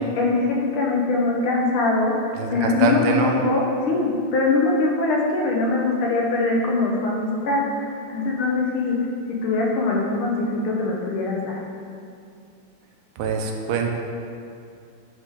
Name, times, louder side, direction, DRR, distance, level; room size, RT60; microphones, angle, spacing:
voice 1, 0.2-2.1 2.5-7.9 8.1-9.0 9.4-11.6, left 3 dB, 80° left, -2 dB, 1.7 m, -22 dB
voice 2, 2.4-3.4 13.2-13.9, right 5 dB, 85° right, 2 dB, 1.5 m, -24 dB
9.1 x 3.6 x 3.7 m, 2.4 s
omnidirectional pair, 2.3 m